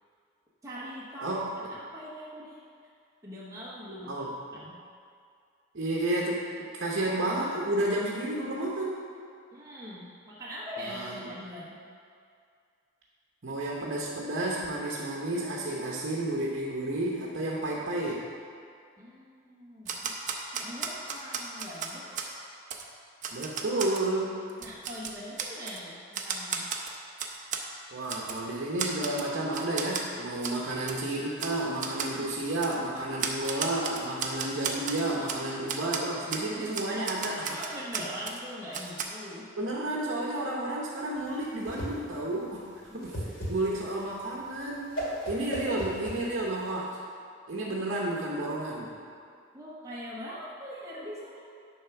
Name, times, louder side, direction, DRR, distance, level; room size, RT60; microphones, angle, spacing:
voice 1, 0.6-1.4 1.7-2.6 3.2-4.3 4.5-4.8 9.5-11.8 19.0-20.1 20.5-22.2 24.6-26.7 36.5-39.5 42.9-43.3 49.5-51.4, equal, 15° right, -7 dB, 0.9 m, -42 dB
voice 2, 4.1-4.6 5.7-9.1 10.9-11.2 13.4-18.3 23.3-24.4 27.9-37.4 39.6-43.0 43.5-44.9 45.3-47.0 47.5-48.9, right 1 dB, 60° right, -4 dB, 0.9 m, -31 dB
Typewriter, 19.9-22.3 22.7-22.8 23.2-24.1 24.5-25.8 26.1-27.7 28.1-28.4 28.8-29.3 29.5-30.1 30.4-30.6 30.9-31.0 31.4-31.5 31.8-32.1 32.6-32.8 33.2-35.4 35.7-36.0 36.3-36.5 36.7-38.4 38.7-39.0, right 6 dB, 35° right, 0.6 m, -34 dB
Whoosh swoosh swish, 41.2-46.7, equal, 65° left, 2.1 m, -37 dB
10.0 x 3.5 x 5.8 m, 2.3 s
head